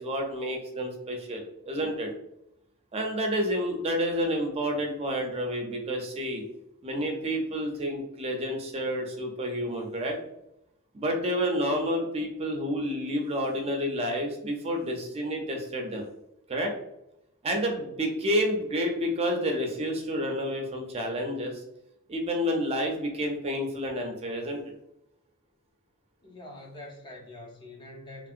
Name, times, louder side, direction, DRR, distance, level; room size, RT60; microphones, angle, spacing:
voice 1, 0.0-2.1 2.9-6.4 6.8-10.2 10.9-16.1 16.5-16.7 17.4-21.6 22.1-24.6, equal, 30° right, 0.4 m, -29 dB
voice 2, 26.2-28.3, left 1 dB, 20° left, 0.5 m, -45 dB
2.8 x 2.7 x 2.4 m
head